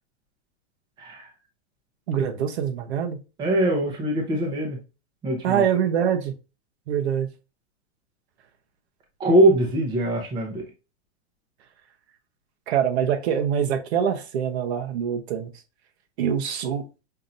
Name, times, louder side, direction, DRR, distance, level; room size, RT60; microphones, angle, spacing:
voice 1, 1.0-1.3 3.4-4.8 5.2-5.6 9.2-10.6, right 1 dB, 15° right, 0.7 m, -22 dB
voice 2, 2.1-3.2 5.4-6.3 6.9-7.3 12.7-15.5 16.2-16.8, right 8 dB, 65° right, 0.9 m, -24 dB
5.7 x 2.8 x 2.5 m
supercardioid pair, 160°, 35 cm